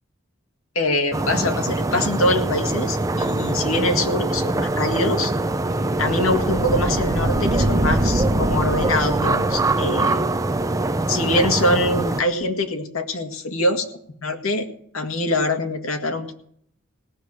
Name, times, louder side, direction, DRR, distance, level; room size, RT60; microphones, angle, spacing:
voice 1, 0.8-5.3 6.0-10.3 11.1-13.9 14.2-14.7 14.9-16.4, left 1 dB, 85° left, 5 dB, 2.0 m, -23 dB
sound 1, 1.1-12.2, right 2 dB, 15° right, 0.5 m, -23 dB
sound 2, 4.7-10.1, right 1 dB, 45° right, 1.2 m, -25 dB
18.0 x 6.6 x 8.7 m, 0.66 s
head